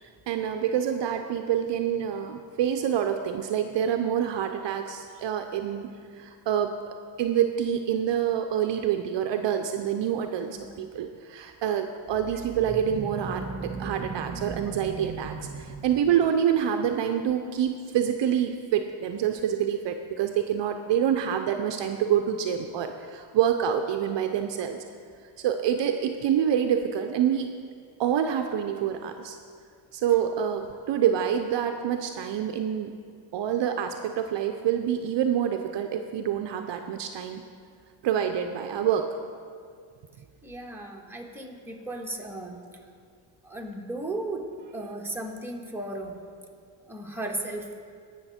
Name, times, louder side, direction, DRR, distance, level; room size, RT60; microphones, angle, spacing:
voice 1, 0.3-5.9 6.1-24.8 25.4-27.5 28.0-29.4 29.9-32.9 33.3-37.4 38.0-39.1, right 9 dB, 60° right, 6 dB, 0.7 m, -27 dB
sound 1, 12.1-16.5, right 4 dB, 35° right, 1.1 m, -37 dB
voice 2, 40.4-42.6 43.4-46.2 46.9-47.7, right 2 dB, 5° right, -1 dB, 1.6 m, -35 dB
17.5 x 6.5 x 4.3 m, 2.2 s
cardioid pair, 85°, 50 cm